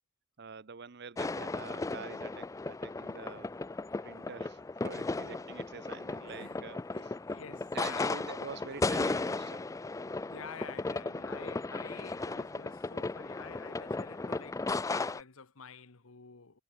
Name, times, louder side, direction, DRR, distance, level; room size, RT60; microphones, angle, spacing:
voice 1, 0.4-3.5 4.0-6.8 7.7-9.6, right 5 dB, 55° right, 0.8 m, -46 dB
sound 1, 1.2-15.2, left 3 dB, 15° left, 0.3 m, -36 dB
voice 2, 6.3-8.3 10.3-16.6, left 5 dB, 85° left, 1.3 m, -49 dB
head